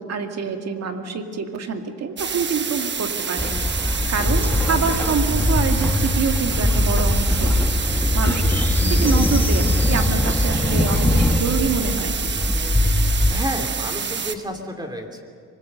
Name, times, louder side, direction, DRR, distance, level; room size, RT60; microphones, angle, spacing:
voice 1, 0.0-3.5 3.8-7.6 8.1-8.4 8.8-12.2, right 5 dB, 60° right, 5 dB, 2.2 m, -26 dB
sound 1, 2.2-14.4, right 6 dB, 35° right, 1.1 m, -28 dB
Train, 3.4-13.4, left 1 dB, 5° left, 1.5 m, -21 dB
voice 2, 13.3-15.2, equal, 15° right, 3 dB, 3.0 m, -31 dB
24.5 x 21.0 x 6.7 m, 2.1 s
cardioid pair, 90°, 30 cm